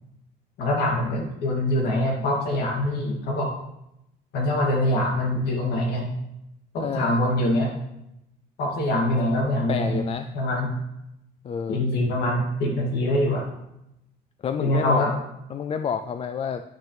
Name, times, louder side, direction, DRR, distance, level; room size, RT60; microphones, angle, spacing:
voice 1, 0.6-3.5 4.3-6.1 6.7-7.7 8.6-10.1 10.3-10.7 11.7-13.5 14.6-15.1, left 1 dB, 75° left, -1 dB, 2.4 m, -24 dB
voice 2, 6.8-7.2 9.7-10.3 11.4-11.8 14.4-15.0 15.5-16.6, left 7 dB, 35° left, 8 dB, 0.4 m, -29 dB
10.0 x 6.5 x 3.3 m, 0.85 s
cardioid pair, 110°, 17 cm